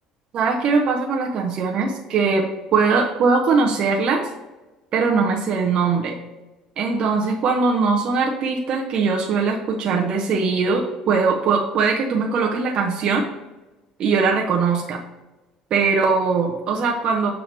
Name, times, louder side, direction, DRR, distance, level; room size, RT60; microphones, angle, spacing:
voice 1, 0.3-2.4 2.7-4.3 4.9-6.2 6.8-13.2 14.0-15.0 15.7-17.3, right 4 dB, 50° right, 1 dB, 0.9 m, -21 dB
6.8 x 2.9 x 5.1 m, 1.1 s
hypercardioid pair, 70°, 2 cm